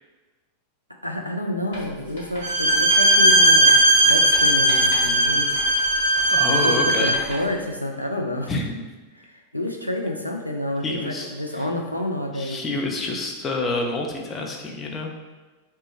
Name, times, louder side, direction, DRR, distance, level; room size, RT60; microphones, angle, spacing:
voice 1, 1.0-5.8 6.5-8.5 9.1-12.6, left 1 dB, 90° left, 1 dB, 0.3 m, -29 dB
Writing, 1.7-7.6, left 1 dB, 65° left, 1.1 m, -39 dB
Bowed string instrument, 2.4-7.3, right 1 dB, 55° right, 0.4 m, -18 dB
voice 2, 6.3-7.1 8.5-8.6 10.8-11.6 12.3-15.1, left 2 dB, 20° left, 1 dB, 0.5 m, -28 dB
3.1 x 2.1 x 3.1 m, 1.3 s
figure-of-eight pair, 90°, 0 cm